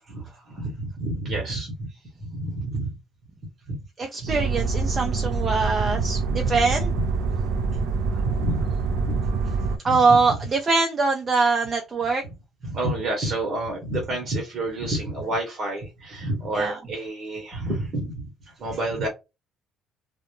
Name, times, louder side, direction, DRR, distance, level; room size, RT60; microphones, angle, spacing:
voice 1, 0.1-1.9 2.2-2.9 3.7-3.8 4.2-4.3 5.8-6.9 7.4-7.9 8.1-9.2 9.8-10.2 12.6-18.2 18.6-19.1, right 1 dB, 40° right, 2 dB, 0.8 m, -30 dB
voice 2, 4.0-6.9 9.8-12.2 16.5-16.8, right 4 dB, 25° right, 3 dB, 0.3 m, -23 dB
sound 1, 4.3-9.8, right 4 dB, 90° right, 0.4 m, -25 dB
2.1 x 2.0 x 2.9 m, 0.25 s
cardioid pair, 155°, 0 cm